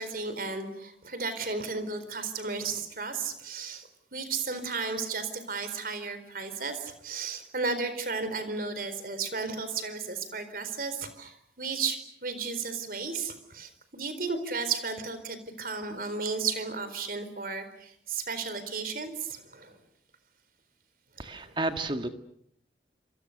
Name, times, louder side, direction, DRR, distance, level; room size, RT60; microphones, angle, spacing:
voice 1, 0.0-19.8 21.2-21.7, right 4 dB, 50° right, 11 dB, 4.2 m, -34 dB
voice 2, 21.2-22.1, right 2 dB, 25° right, 7 dB, 1.9 m, -31 dB
28.5 x 26.5 x 6.7 m, 0.67 s
head